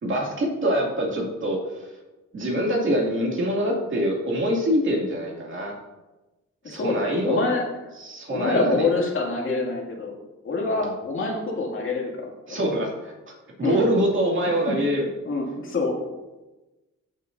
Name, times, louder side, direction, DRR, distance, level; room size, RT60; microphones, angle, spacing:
voice 1, 0.0-1.9 2.3-5.7 6.7-7.4 8.0-8.9 10.8-10.9 12.5-13.3 13.6-15.1, equal, 40° right, -1 dB, 2.4 m, -24 dB
voice 2, 7.2-7.6 8.3-10.1 10.4-12.7 13.6-13.8 14.7-14.8 15.3-16.0, left 3 dB, 45° left, -1 dB, 2.4 m, -26 dB
13.5 x 6.3 x 2.6 m, 1.1 s
cardioid pair, 90°, 30 cm